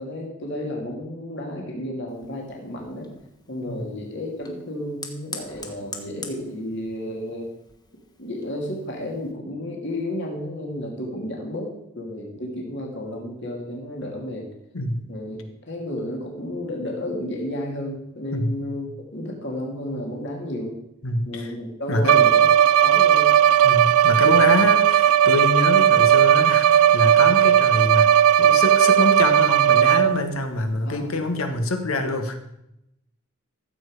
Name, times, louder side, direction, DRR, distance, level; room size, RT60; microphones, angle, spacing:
voice 1, 0.0-3.1 3.5-7.5 8.2-14.5 15.1-15.4 15.7-20.8 21.2-22.5 22.8-23.4 30.8-31.1, left 1 dB, 55° left, 0 dB, 2.6 m, -32 dB
Fire, 2.1-9.3, left 3 dB, 20° left, 1.3 m, -43 dB
voice 2, 14.7-15.1 18.3-18.6 21.0-21.5 21.9-22.2 23.6-32.4, left 2 dB, 80° left, 7 dB, 1.5 m, -25 dB
Bowed string instrument, 22.0-30.3, right 10 dB, 85° right, 0.4 m, -16 dB
14.5 x 7.4 x 4.9 m, 0.82 s
head